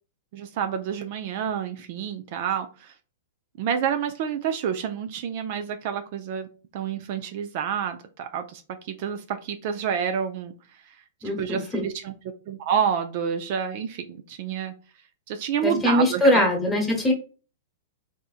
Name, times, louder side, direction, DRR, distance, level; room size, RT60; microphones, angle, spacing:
voice 1, 0.3-2.9 3.6-6.5 6.7-10.5 11.4-12.1 12.5-14.7 15.3-16.4, right 8 dB, 55° right, 7 dB, 0.4 m, -28 dB
voice 2, 11.2-11.8 15.6-17.1, left 1 dB, 10° left, 0 dB, 1.2 m, -22 dB
3.4 x 2.7 x 2.4 m, 0.36 s
hypercardioid pair, 120°, 0 cm